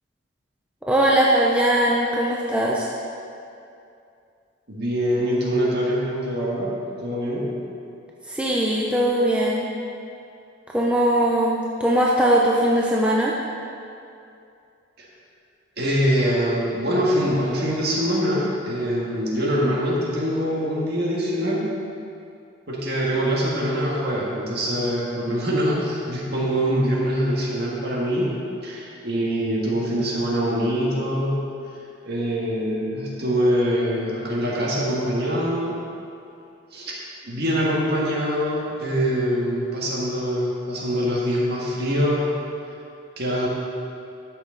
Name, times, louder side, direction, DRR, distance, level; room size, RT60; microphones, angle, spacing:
voice 1, 0.8-2.9 8.3-9.7 10.7-13.3, right 1 dB, 5° right, -4 dB, 0.6 m, -20 dB
voice 2, 4.7-7.5 15.0-15.1 15.8-21.7 22.7-31.4 32.0-35.8 36.7-36.9 37.3-42.3 43.2-43.5, equal, 50° right, -5 dB, 1.9 m, -24 dB
13.0 x 6.1 x 4.0 m, 2.5 s
head